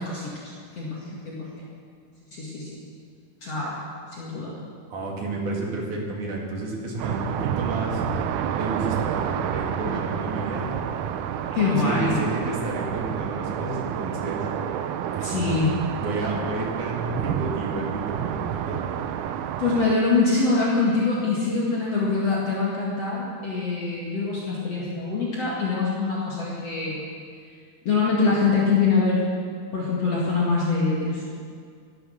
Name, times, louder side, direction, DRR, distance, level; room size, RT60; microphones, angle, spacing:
voice 1, 0.0-1.6 2.3-2.8 3.4-3.8 4.1-4.5 11.5-12.2 15.2-15.8 19.6-27.1 27.8-29.2 29.7-31.3, left 4 dB, 45° left, -5 dB, 2.8 m, -24 dB
voice 2, 4.9-8.0 8.5-10.8 11.6-14.5 15.2-15.7 16.0-18.8, right 2 dB, 55° right, -2 dB, 3.8 m, -31 dB
sound 1, 7.0-19.9, right 9 dB, 90° right, 1.8 m, -29 dB
17.5 x 11.0 x 6.5 m, 2.1 s
omnidirectional pair, 4.5 m